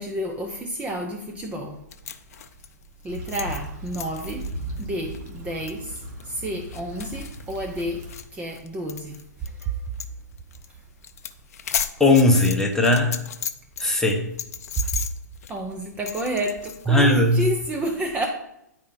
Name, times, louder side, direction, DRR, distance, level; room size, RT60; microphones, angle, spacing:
voice 1, 0.0-1.8 3.0-4.5 4.8-8.0 8.3-9.9 15.5-18.3, right 1 dB, 15° right, 2 dB, 0.7 m, -30 dB
sound 1, 1.9-9.6 10.0-10.1 10.4-10.7 11.0-13.8 14.1-16.8, left 8 dB, 55° left, 0.6 m, -35 dB
Stream / Traffic noise roadway noise / Trickle dribble, 3.1-8.2, right 1 dB, 30° right, 2.0 m, -37 dB
voice 2, 12.0-13.2 13.8-14.3 16.9-17.4, left 2 dB, 5° left, 2 dB, 1.0 m, -18 dB
10.0 x 4.4 x 3.9 m, 0.80 s
figure-of-eight pair, 120°, 10 cm